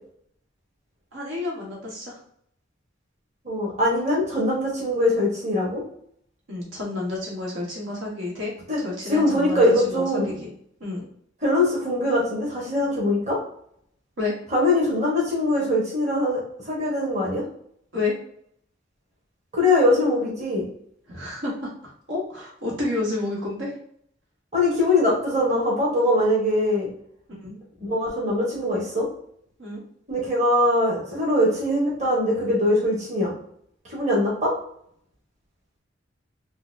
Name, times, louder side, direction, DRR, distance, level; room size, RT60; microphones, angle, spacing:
voice 1, 1.1-2.2 6.5-8.5 8.8-10.5 10.8-11.1 14.2-14.3 17.9-18.1 21.1-23.7 27.3-27.6 29.6-29.8, left 2 dB, 90° right, -4 dB, 1.4 m, -30 dB
voice 2, 3.4-5.8 8.7-10.4 11.4-13.4 14.5-17.4 19.5-20.7 24.5-26.9 27.8-29.1 30.1-33.3 33.8-34.5, left 1 dB, 35° right, -4 dB, 1.1 m, -22 dB
3.9 x 2.3 x 2.6 m, 0.67 s
head